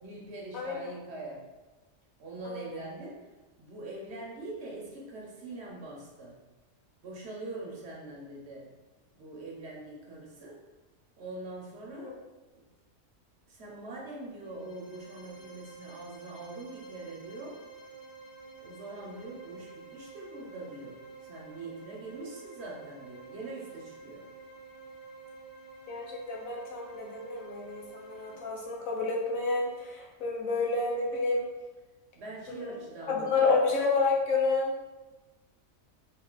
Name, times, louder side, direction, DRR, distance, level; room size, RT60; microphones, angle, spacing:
voice 1, 0.0-1.4 2.2-3.2 3.6-6.4 7.0-8.7 9.1-10.6 11.2-12.2 13.5-17.6 18.6-24.3 32.1-33.6, right 2 dB, 55° right, -2 dB, 1.0 m, -43 dB
voice 2, 0.5-0.9 2.4-2.8 11.9-12.2 25.9-31.4 32.5-32.8 33.1-34.7, left 3 dB, 80° left, -1 dB, 1.2 m, -30 dB
sound 1, 14.3-28.4, right 4 dB, 65° left, 1.5 m, -49 dB
3.7 x 2.7 x 3.8 m, 1.1 s
omnidirectional pair, 1.4 m